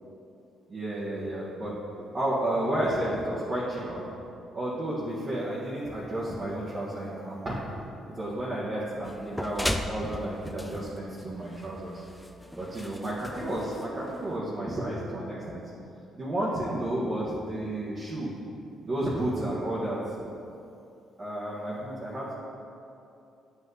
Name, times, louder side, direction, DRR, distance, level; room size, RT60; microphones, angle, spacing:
voice 1, 0.7-4.1 4.5-7.6 8.2-12.0 12.6-15.6 16.1-18.3 18.8-20.0 21.2-22.4, right 1 dB, 35° right, -9 dB, 1.7 m, -32 dB
sound 1, 9.0-14.4, left 1 dB, 5° left, 0.5 m, -37 dB
9.1 x 5.7 x 4.0 m, 2.7 s
cardioid pair, 90°, 0 cm